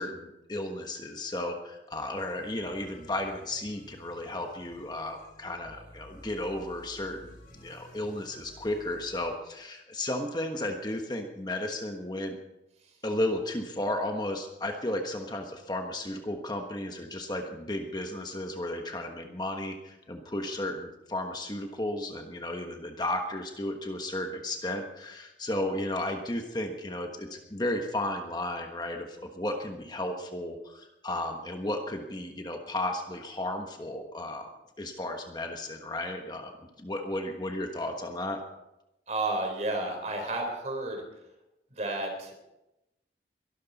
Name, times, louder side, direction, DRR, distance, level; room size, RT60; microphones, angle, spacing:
voice 1, 0.0-7.3 7.6-12.4 13.0-34.5 34.8-36.5 36.8-38.4, left 1 dB, 25° left, 4 dB, 1.3 m, -34 dB
sound 1, 1.9-9.5, left 1 dB, 55° left, 5.5 m, -53 dB
voice 2, 39.1-41.0 41.7-42.4, right 2 dB, 40° right, 3 dB, 4.0 m, -31 dB
22.5 x 13.0 x 4.1 m, 0.93 s
head